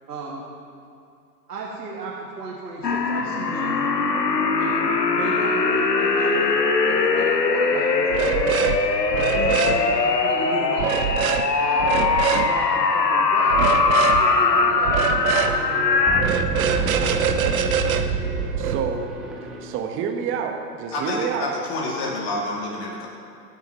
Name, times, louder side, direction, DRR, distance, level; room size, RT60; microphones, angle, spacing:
voice 1, 0.1-0.4 1.5-3.8 4.6-4.7 5.1-6.5 6.9-8.6 9.1-12.0 12.3-15.9 16.6-17.4, right 3 dB, 75° right, -4 dB, 2.1 m, -34 dB
sound 1, 2.8-16.2, left 4 dB, 85° left, 1.2 m, -21 dB
sound 2, 8.1-8.8 9.1-9.8 10.8-11.4 11.8-12.5 13.5-14.2 14.8-15.6 16.2-18.9, right 8 dB, 60° right, 1.0 m, -24 dB
sound 3, 14.2-19.6, right 1 dB, ahead, 0.4 m, -31 dB
voice 2, 18.6-19.1 19.6-21.5, right 7 dB, 25° right, 4 dB, 1.3 m, -28 dB
voice 3, 20.9-23.1, left 2 dB, 35° left, -3 dB, 2.5 m, -28 dB
23.5 x 9.2 x 3.0 m, 2.4 s
figure-of-eight pair, 115°, 47 cm